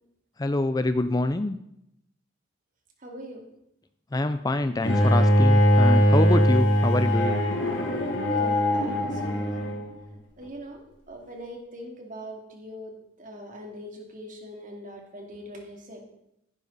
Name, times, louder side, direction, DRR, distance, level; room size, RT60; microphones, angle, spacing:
voice 1, 0.4-1.6 4.1-7.4, left 2 dB, 20° left, 11 dB, 0.4 m, -26 dB
voice 2, 3.0-3.4 8.3-9.5 10.4-16.0, equal, 40° right, 1 dB, 2.6 m, -41 dB
Bowed string instrument, 4.8-9.9, equal, 65° left, 3.1 m, -21 dB
15.0 x 11.0 x 4.1 m, 0.80 s
head